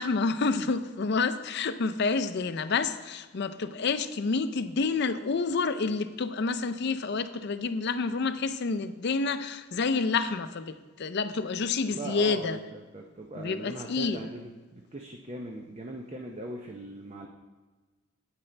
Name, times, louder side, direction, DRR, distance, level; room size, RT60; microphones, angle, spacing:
voice 1, 0.0-12.6 13.3-14.3, left 4 dB, 55° left, 11 dB, 0.5 m, -29 dB
voice 2, 11.9-17.3, right 1 dB, 30° right, 2 dB, 0.6 m, -40 dB
9.6 x 8.9 x 3.3 m, 1.3 s
head